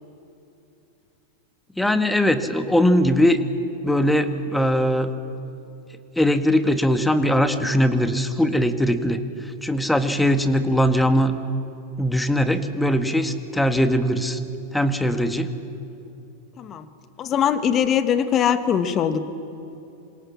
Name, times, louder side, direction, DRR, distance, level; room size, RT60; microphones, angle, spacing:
voice 1, 1.8-3.4 3.8-5.1 6.2-9.2 9.6-11.3 12.0-14.4 14.7-15.5, equal, 5° left, 9 dB, 1.6 m, -20 dB
voice 2, 17.2-19.2, left 8 dB, 30° left, 10 dB, 1.6 m, -21 dB
27.0 x 26.0 x 7.4 m, 2.7 s
figure-of-eight pair, 90°, 0 cm